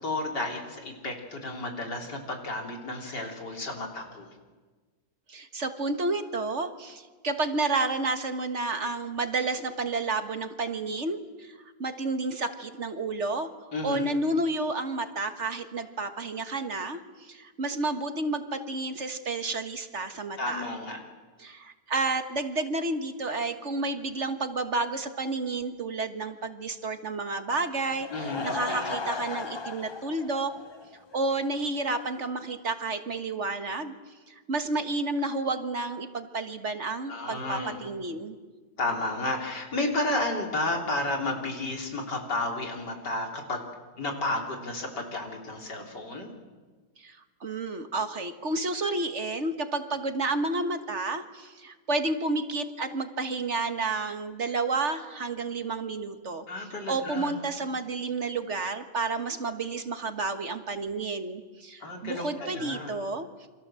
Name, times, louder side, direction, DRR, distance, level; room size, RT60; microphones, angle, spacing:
voice 1, 0.0-4.3 13.7-14.2 20.4-21.0 28.1-28.9 37.1-37.8 38.8-43.7 44.0-46.3 56.5-57.3 61.8-63.0, left 2 dB, 85° left, 2 dB, 4.1 m, -32 dB
voice 2, 5.3-13.5 13.8-20.7 21.4-30.6 31.1-33.9 34.3-38.4 47.0-56.4 56.9-63.3, right 3 dB, 45° right, 8 dB, 1.7 m, -31 dB
Laughter / Crowd, 27.8-31.3 31.6-31.7 32.2-32.3 32.5-32.6, left 3 dB, 35° left, 0.4 m, -36 dB
29.0 x 25.5 x 7.7 m, 1.4 s
omnidirectional pair, 1.8 m